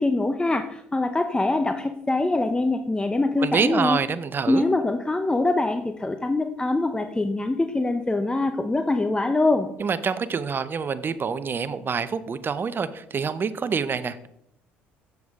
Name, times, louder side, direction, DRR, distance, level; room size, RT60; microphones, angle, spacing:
voice 1, 0.0-4.0 4.5-9.7, left 2 dB, 15° left, 8 dB, 0.7 m, -24 dB
voice 2, 3.4-4.7 9.8-14.3, right 5 dB, 40° right, 14 dB, 0.7 m, -26 dB
7.9 x 7.1 x 3.6 m, 0.77 s
hypercardioid pair, 60°, 6 cm